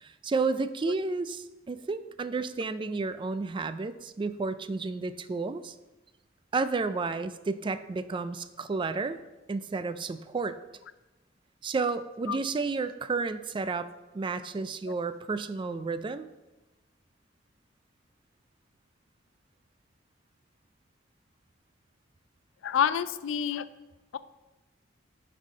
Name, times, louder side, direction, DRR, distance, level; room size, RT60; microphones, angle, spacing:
voice 1, 0.0-5.7 6.5-9.2 9.5-10.6 11.6-13.9 14.1-16.3, right 4 dB, 25° right, 12 dB, 0.3 m, -31 dB
voice 2, 22.6-23.7 24.1-24.2, left 8 dB, 90° left, 16 dB, 0.4 m, -28 dB
6.4 x 5.5 x 5.1 m, 1.1 s
head